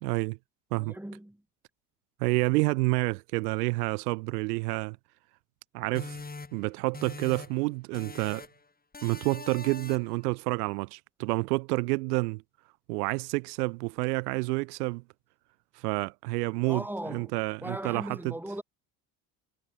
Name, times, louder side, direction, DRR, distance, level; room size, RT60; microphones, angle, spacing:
voice 1, 0.0-0.4 0.7-1.0 2.2-5.0 5.7-6.2 6.5-8.5 9.0-12.4 12.9-15.0 15.7-18.3, right 25 dB, 70° right, 2.5 m, -29 dB
voice 2, 0.8-1.4 16.7-17.3 17.6-18.6, right 1 dB, 5° right, 5.4 m, -38 dB
sound 1, 5.9-7.7 7.9-8.6 8.9-10.2, left 3 dB, 20° left, 5.2 m, -43 dB
hypercardioid pair, 60°, 48 cm